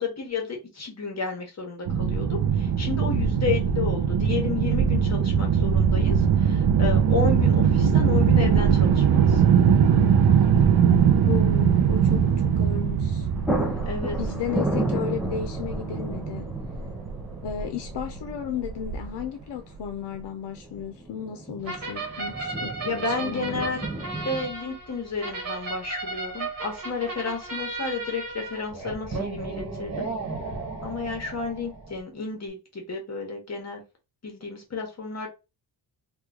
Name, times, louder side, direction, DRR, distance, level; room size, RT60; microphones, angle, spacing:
voice 1, 0.0-9.5 13.9-14.2 22.8-23.8 24.2-30.1 30.8-33.8 34.2-35.3, left 4 dB, 40° left, 1.0 m, -31 dB
sound 1, 1.9-19.2, right 7 dB, 60° right, 0.5 m, -21 dB
sound 2, 6.5-6.6 8.2-8.6 8.9-9.0 12.7-12.9 13.1-24.5, right 2 dB, ahead, 0.6 m, -33 dB
voice 2, 11.3-13.3 14.2-16.5 17.4-23.8, left 8 dB, 85° left, 0.5 m, -34 dB
sound 3, 21.6-32.0, right 3 dB, 35° right, 1.2 m, -35 dB
3.0 x 2.3 x 3.6 m
wide cardioid pair, 160°, 41 cm